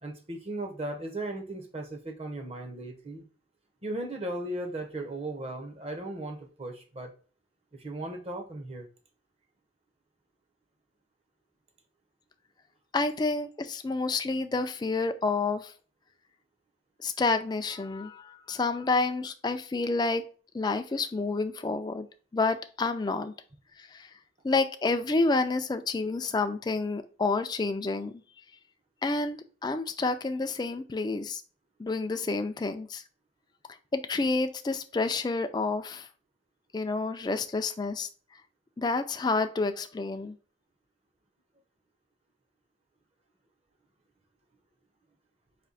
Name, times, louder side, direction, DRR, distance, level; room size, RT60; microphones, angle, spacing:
voice 1, 0.0-3.2 3.8-7.1 7.7-8.9, right 1 dB, 35° right, 4 dB, 0.7 m, -37 dB
voice 2, 12.9-15.7 17.0-20.2 20.5-22.1 22.3-23.3 23.8-24.1 24.4-28.2 29.0-31.4 31.8-33.0 33.9-36.1 36.7-38.1 38.8-40.4, left 3 dB, 20° left, 9 dB, 0.3 m, -29 dB
4.2 x 2.7 x 4.0 m, 0.39 s
head